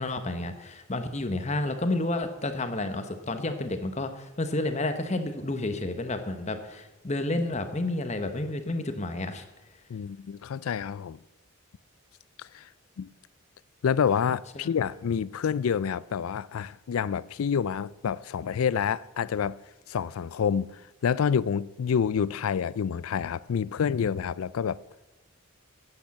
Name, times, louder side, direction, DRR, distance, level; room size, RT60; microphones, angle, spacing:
voice 1, 0.0-9.4 14.6-14.7, left 2 dB, 30° left, 1.0 m, -30 dB
voice 2, 9.9-11.2 12.4-12.7 13.0-13.1 13.8-19.6 19.9-24.8, left 7 dB, 85° left, 0.4 m, -28 dB
10.0 x 8.9 x 7.1 m
head